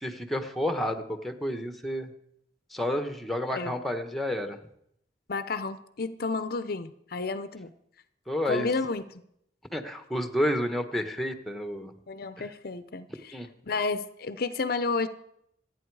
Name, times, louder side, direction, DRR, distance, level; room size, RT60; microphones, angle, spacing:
voice 1, 0.0-2.1 2.7-4.6 8.3-8.7 9.7-11.9 12.4-12.5 13.3-13.5, equal, ahead, 7 dB, 1.2 m, -30 dB
voice 2, 5.3-7.7 8.4-9.0 12.1-13.3 13.7-15.1, left 4 dB, 55° left, 12 dB, 0.7 m, -31 dB
26.5 x 9.3 x 4.8 m, 0.74 s
head